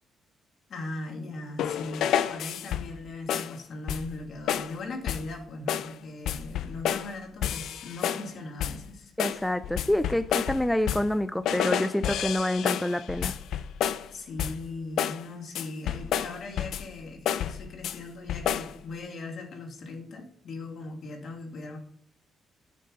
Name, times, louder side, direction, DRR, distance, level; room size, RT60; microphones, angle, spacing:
voice 1, 0.7-9.1 14.1-21.8, left 2 dB, 60° left, 3 dB, 2.4 m, -39 dB
sound 1, 1.6-3.0 3.3-3.6 3.9-4.2 4.5-4.8 5.1-5.3 5.7-6.0 6.3-7.1 7.4-8.3 8.6-8.9 9.2-11.2 11.5-14.1 14.4-14.7 15.0-15.2 15.5-16.9 17.3-18.0 18.3-18.8, left 10 dB, 80° left, 0.5 m, -30 dB
voice 2, 9.2-13.3, left 1 dB, 5° left, 12 dB, 0.4 m, -27 dB
10.0 x 6.6 x 5.4 m, 0.67 s
cardioid pair, 90°, 0 cm